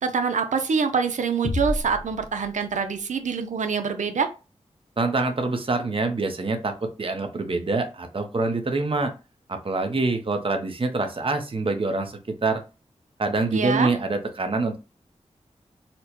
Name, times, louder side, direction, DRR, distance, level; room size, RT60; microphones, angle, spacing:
voice 1, 0.0-4.3 13.5-13.9, right 5 dB, 85° right, 7 dB, 0.6 m, -25 dB
sound 1, 1.4-3.2, left 2 dB, 55° left, 0.5 m, -31 dB
voice 2, 5.0-9.1 9.5-12.6 13.2-14.8, right 3 dB, 45° right, 6 dB, 0.7 m, -25 dB
4.1 x 2.1 x 2.9 m, 0.31 s
wide cardioid pair, 60°, 12 cm